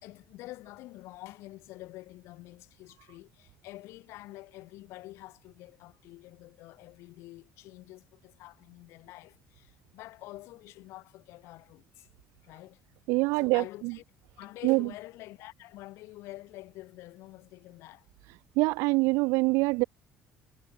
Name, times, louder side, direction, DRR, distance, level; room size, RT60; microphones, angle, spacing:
voice 1, 0.0-12.1 12.4-12.8 13.4-14.0 14.4-18.1, left 18 dB, 75° left, 3.5 m, -47 dB
voice 2, 13.1-13.9 14.6-14.9 18.6-19.8, right 26 dB, 80° right, 0.4 m, -25 dB
supercardioid pair, 80°, 5 cm